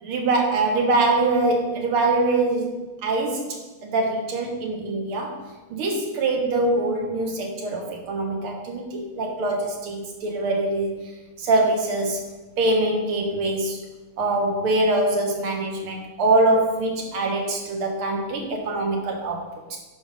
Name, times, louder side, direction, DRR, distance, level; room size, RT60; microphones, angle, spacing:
voice 1, 0.0-5.4 5.7-10.9 11.4-12.3 12.6-13.8 14.2-19.8, right 2 dB, 80° right, 1 dB, 2.3 m, -23 dB
11.5 x 4.3 x 5.3 m, 1.2 s
omnidirectional pair, 2.4 m